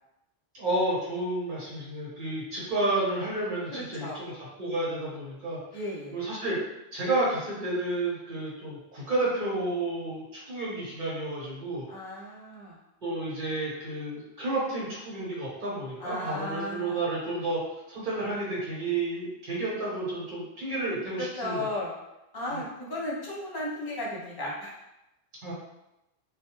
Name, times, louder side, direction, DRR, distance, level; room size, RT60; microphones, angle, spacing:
voice 1, 0.5-5.6 6.1-6.6 6.9-11.9 13.0-17.6 17.9-21.7 22.5-22.6 25.4-25.5, right 2 dB, 50° right, -6 dB, 1.1 m, -31 dB
voice 2, 3.7-4.2 5.7-6.2 11.9-12.8 16.0-17.0 21.2-21.9 22.3-24.7, left 1 dB, 30° left, -5 dB, 0.5 m, -35 dB
2.2 x 2.2 x 2.9 m, 0.91 s
omnidirectional pair, 1.1 m